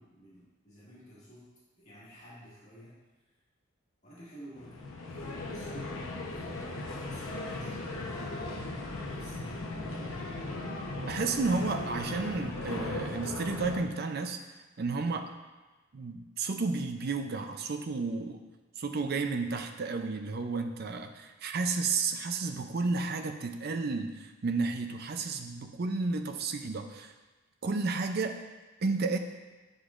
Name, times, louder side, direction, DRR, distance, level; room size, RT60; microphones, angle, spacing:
voice 1, 0.0-1.5 1.8-2.9 4.0-4.8 5.2-5.9 6.3-8.7 9.1-10.2, equal, 35° left, -10 dB, 1.9 m, -52 dB
sound 1, 4.6-13.8, left 2 dB, 85° left, 0.9 m, -37 dB
voice 2, 11.0-14.4 14.8-15.3 15.9-18.4 18.8-27.1 27.6-28.4 28.8-29.2, right 4 dB, 50° right, 6 dB, 0.5 m, -32 dB
7.8 x 5.1 x 2.5 m, 1.2 s
head